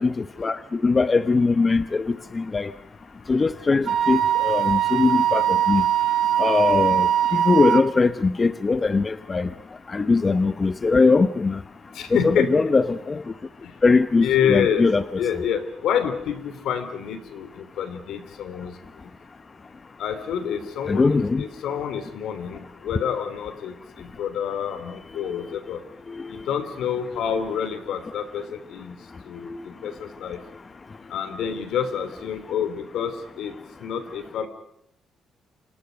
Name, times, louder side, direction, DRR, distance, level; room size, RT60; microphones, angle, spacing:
voice 1, 0.0-2.7 3.3-5.8 6.4-9.5 9.9-11.6 12.1-13.2 13.8-15.0 20.9-21.4 26.1-26.4, left 4 dB, 30° left, 12 dB, 0.9 m, -21 dB
Wind instrument woodwind instrument, 3.9-7.8, right 10 dB, 65° right, 2.2 m, -21 dB
voice 2, 11.9-12.5 14.2-14.9 15.2-18.7 20.0-21.0 21.4-25.8 26.3-28.9 29.2-30.4 31.1-33.5 33.8-34.5, left 8 dB, 80° left, 10 dB, 3.2 m, -27 dB
28.5 x 26.0 x 5.3 m, 0.77 s
cardioid pair, 90°, 0 cm